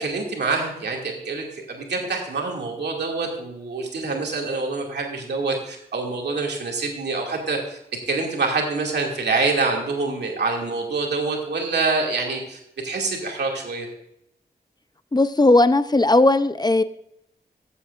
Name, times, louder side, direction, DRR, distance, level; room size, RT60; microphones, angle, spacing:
voice 1, 0.0-7.8 8.1-12.6 12.8-13.9, right 3 dB, 90° right, 0 dB, 2.3 m, -26 dB
voice 2, 15.1-16.8, left 2 dB, 25° left, 12 dB, 0.6 m, -17 dB
15.0 x 8.3 x 2.5 m, 0.78 s
cardioid pair, 60°, 17 cm